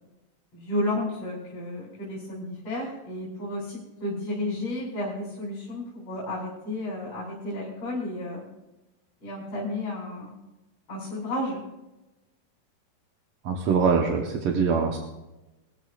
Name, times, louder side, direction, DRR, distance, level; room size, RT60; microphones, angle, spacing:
voice 1, 0.5-8.4 9.2-10.3 10.9-11.6, left 1 dB, 50° left, -6 dB, 4.6 m, -32 dB
voice 2, 13.4-15.0, right 5 dB, 60° right, 1 dB, 1.8 m, -23 dB
21.5 x 13.5 x 2.5 m, 1.0 s
omnidirectional pair, 3.6 m